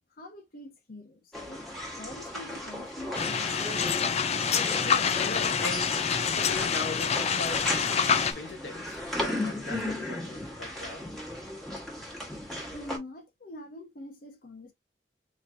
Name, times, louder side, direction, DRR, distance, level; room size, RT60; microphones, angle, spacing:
voice 1, 0.2-1.6 2.0-3.9 12.7-14.7, left 1 dB, 55° left, 1.0 m, -45 dB
sound 1, 1.3-13.0, left 1 dB, ahead, 1.5 m, -36 dB
sound 2, 3.1-8.3, left 6 dB, 40° left, 0.4 m, -27 dB
voice 2, 4.9-6.1 6.4-7.9 8.2-11.1, left 3 dB, 90° left, 0.9 m, -39 dB
4.2 x 3.2 x 2.5 m
head